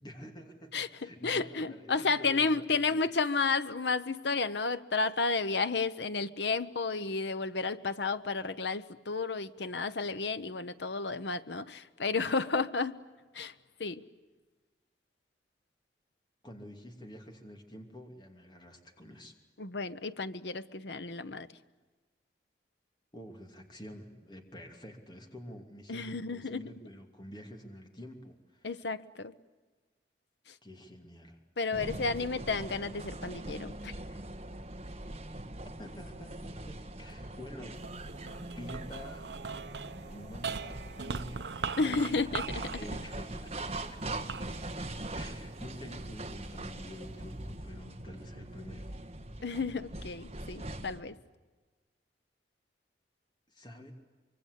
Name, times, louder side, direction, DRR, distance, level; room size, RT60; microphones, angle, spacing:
voice 1, 0.0-3.0 16.4-19.4 23.1-28.7 30.6-31.4 31.7-32.3 35.7-37.8 38.2-39.4 39.9-42.3 42.8-44.3 45.1-48.9 53.5-53.9, left 1 dB, 25° left, 4 dB, 2.8 m, -48 dB
voice 2, 0.7-13.0 13.3-13.5 13.8-14.0 19.6-21.5 25.9-26.7 28.6-29.3 30.5-30.6 31.6-33.9 41.8-42.8 49.4-51.2, left 4 dB, 80° left, 13 dB, 1.0 m, -32 dB
sound 1, 31.7-51.0, right 1 dB, 35° right, 1.5 m, -42 dB
sound 2, 37.8-46.2 46.8-47.6, right 5 dB, 75° right, 0.9 m, -41 dB
25.0 x 24.0 x 8.3 m, 1.3 s
head